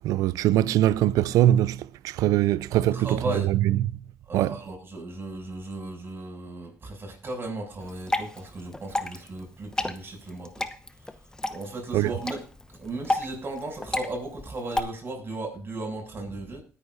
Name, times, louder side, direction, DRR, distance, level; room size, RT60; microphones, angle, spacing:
voice 1, 0.0-3.9 4.3-4.5 11.9-12.1, right 13 dB, 75° right, 0.4 m, -22 dB
voice 2, 2.7-3.5 4.3-10.6 11.5-12.4 12.7-16.6, right 2 dB, 40° right, 7.3 m, -36 dB
Water / Drip, 7.8-14.8, left 2 dB, 10° left, 1.0 m, -32 dB
20.0 x 9.9 x 2.7 m
supercardioid pair, 65°, 6 cm